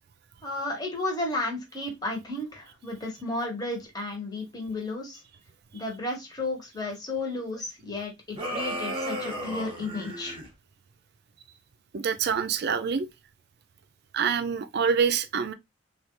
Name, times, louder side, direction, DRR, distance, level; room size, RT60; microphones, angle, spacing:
voice 1, 0.4-5.2 5.7-10.4, left 2 dB, 20° left, 1.0 m, -33 dB
sound 1, 8.3-10.5, right 1 dB, 30° right, 0.9 m, -34 dB
voice 2, 11.9-13.1 14.1-15.5, right 6 dB, 60° right, 0.4 m, -26 dB
3.2 x 2.3 x 2.9 m
head